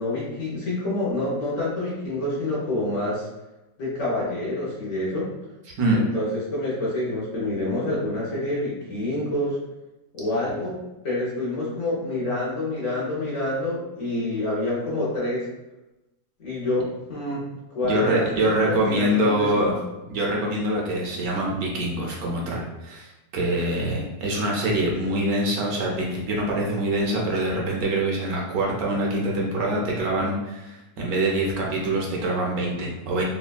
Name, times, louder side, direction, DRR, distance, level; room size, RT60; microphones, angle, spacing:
voice 1, 0.0-3.3 3.8-5.3 5.9-9.6 10.1-10.8 11.0-15.4 16.4-17.4 17.7-19.7, left 1 dB, 55° left, -6 dB, 1.0 m, -27 dB
voice 2, 17.8-19.7 20.1-33.2, right 1 dB, 75° right, -2 dB, 1.0 m, -25 dB
3.3 x 2.2 x 2.3 m, 1.0 s
omnidirectional pair, 1.7 m